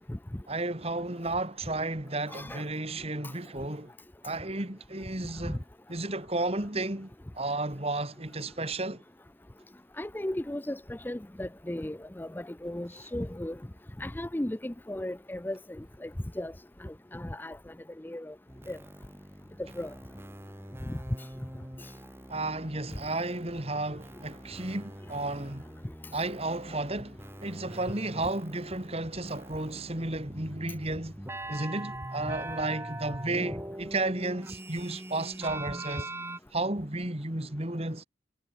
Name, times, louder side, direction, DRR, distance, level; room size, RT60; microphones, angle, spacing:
voice 1, 0.5-3.9 4.2-5.6 5.9-9.0 22.3-25.6 26.1-31.2 31.5-36.1 36.5-38.0, right 2 dB, 35° right, 3.1 m, -33 dB
voice 2, 2.3-2.6 5.4-5.5 10.0-13.6 14.0-16.1 16.4-16.5 16.8-17.6 18.0-18.3 18.7-18.8 19.8-19.9 20.9-21.0, left 1 dB, 10° left, 0.6 m, -36 dB
sound 1, 18.5-36.4, right 1 dB, 15° right, 4.3 m, -43 dB
head